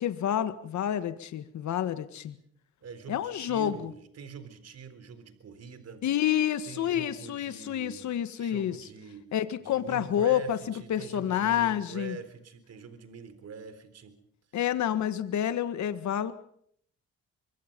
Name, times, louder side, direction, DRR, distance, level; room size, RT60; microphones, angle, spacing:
voice 1, 0.0-2.4 3.1-3.7 6.0-8.9 9.3-10.6 10.9-12.2 14.5-16.3, left 10 dB, 70° left, 12 dB, 1.7 m, -28 dB
voice 2, 2.8-6.0 6.7-9.3 9.6-14.2, right 5 dB, 55° right, 12 dB, 3.9 m, -44 dB
25.0 x 23.0 x 5.3 m, 0.65 s
cardioid pair, 90°, 30 cm